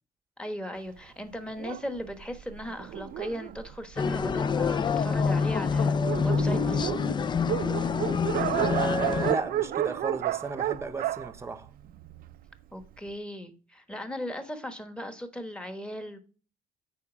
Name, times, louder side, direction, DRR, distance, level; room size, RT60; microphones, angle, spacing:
voice 1, 0.4-6.0 6.2-6.9 12.7-16.2, equal, 5° left, 1.3 m, -37 dB
Dog, 1.6-4.6 5.3-5.4 5.7-5.8 5.9-12.3, right 13 dB, 60° right, 0.5 m, -32 dB
sound 1, 4.0-9.3, left 6 dB, 25° left, 0.4 m, -26 dB
voice 2, 8.5-11.7, right 4 dB, 15° right, 0.9 m, -34 dB
8.4 x 4.9 x 6.0 m
cardioid pair, 110°, 17 cm